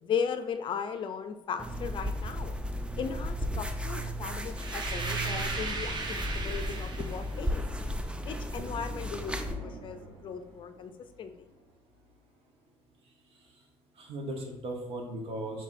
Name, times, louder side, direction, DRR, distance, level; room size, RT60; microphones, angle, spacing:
voice 1, 0.0-2.6 3.0-7.6 8.2-10.9 11.2-11.3, left 7 dB, 50° left, 9 dB, 0.4 m, -37 dB
sound 1, 1.6-9.5, equal, 10° right, 0.5 m, -34 dB
sound 2, 4.6-7.3, right 3 dB, 45° right, 0.7 m, -37 dB
sound 3, 5.7-13.9, left 1 dB, 90° right, 1.1 m, -52 dB
voice 2, 13.3-13.6 14.0-15.6, right 1 dB, 60° right, 2 dB, 1.0 m, -38 dB
5.4 x 3.3 x 2.6 m, 1.1 s
supercardioid pair, 85°, 11 cm